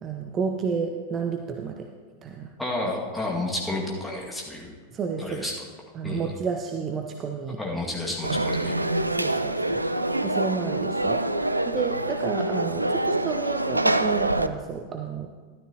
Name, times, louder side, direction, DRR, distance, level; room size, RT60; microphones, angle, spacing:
voice 1, 0.0-1.9 2.2-2.5 4.9-5.5 5.9-7.6 8.3-8.4 9.1-11.2 11.6-15.3, right 5 dB, 25° right, 4 dB, 0.6 m, -31 dB
voice 2, 2.6-4.7 5.2-5.5 6.0-6.3 7.6-8.7, left 2 dB, 5° left, -3 dB, 2.0 m, -30 dB
Conversation / Crowd, 8.2-14.5, right 1 dB, 85° right, 0.3 m, -25 dB
13.0 x 12.0 x 2.9 m, 1.5 s
figure-of-eight pair, 90°, 0 cm